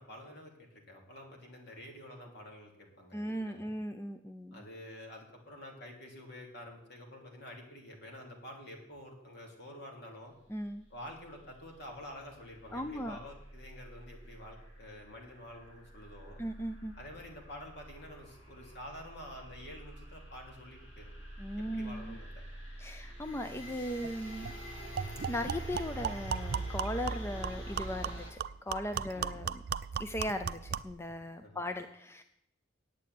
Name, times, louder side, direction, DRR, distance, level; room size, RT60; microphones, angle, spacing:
voice 1, 0.0-3.7 4.5-10.3 10.9-16.4 17.0-21.1 21.6-22.4 29.1-29.4 31.4-31.6, left 1 dB, 60° left, 1 dB, 2.9 m, -49 dB
voice 2, 3.1-4.6 10.5-10.8 12.7-13.2 16.4-17.0 21.4-22.2 22.8-24.5 25.3-29.6 30.0-32.2, equal, 15° left, 8 dB, 0.5 m, -38 dB
sound 1, 10.6-28.3, right 1 dB, 75° left, 3.5 m, -46 dB
sound 2, 24.0-24.1 24.4-24.6 25.0-31.0, right 7 dB, 50° right, 0.4 m, -37 dB
8.6 x 8.3 x 9.2 m, 0.78 s
head